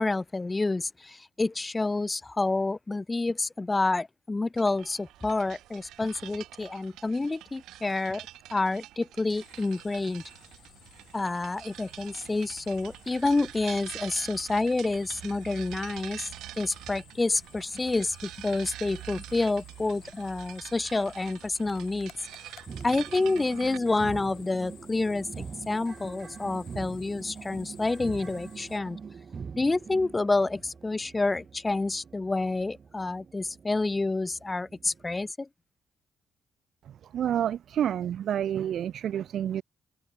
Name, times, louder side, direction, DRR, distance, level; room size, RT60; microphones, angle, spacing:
voice 1, 0.0-10.2 11.1-16.3 16.6-22.1 22.8-29.0 29.5-35.5, left 3 dB, 20° left, 0.5 m, -28 dB
sound 1, 4.6-23.8, right 14 dB, 85° right, 7.9 m, -46 dB
sound 2, 9.4-28.8, left 12 dB, 75° left, 7.6 m, -55 dB
sound 3, 22.7-35.3, right 6 dB, 40° right, 7.0 m, -44 dB
voice 2, 36.9-39.6, right 10 dB, 65° right, 0.4 m, -29 dB
cardioid pair, 90°, 0 cm